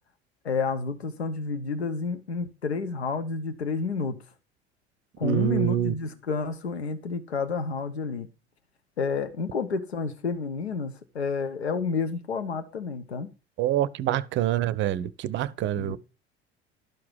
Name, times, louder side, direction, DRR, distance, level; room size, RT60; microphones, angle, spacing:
voice 1, 0.4-4.2 5.2-8.3 9.0-13.3 15.8-16.0, left 4 dB, 80° left, 0.7 m, -30 dB
voice 2, 5.2-5.9 13.6-16.0, right 12 dB, 35° right, 0.6 m, -26 dB
12.0 x 4.8 x 5.4 m
figure-of-eight pair, 65°, 32 cm